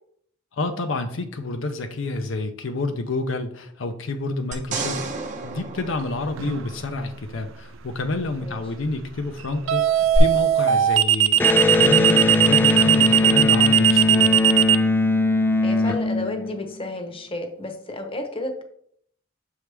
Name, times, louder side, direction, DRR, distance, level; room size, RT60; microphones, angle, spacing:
voice 1, 0.5-5.2 5.4-11.4 11.7-14.4, left 2 dB, 70° left, 6 dB, 0.6 m, -29 dB
sound 1, 4.5-7.0 10.1-10.2, right 3 dB, 40° right, 0.8 m, -31 dB
sound 2, 6.4-6.7 9.7-14.8, right 11 dB, 75° right, 0.4 m, -18 dB
Electric guitar, 11.4-16.9, left 2 dB, 10° left, 0.4 m, -20 dB
voice 2, 15.6-18.6, left 2 dB, 30° left, 5 dB, 0.9 m, -32 dB
7.0 x 4.7 x 3.3 m, 0.67 s
head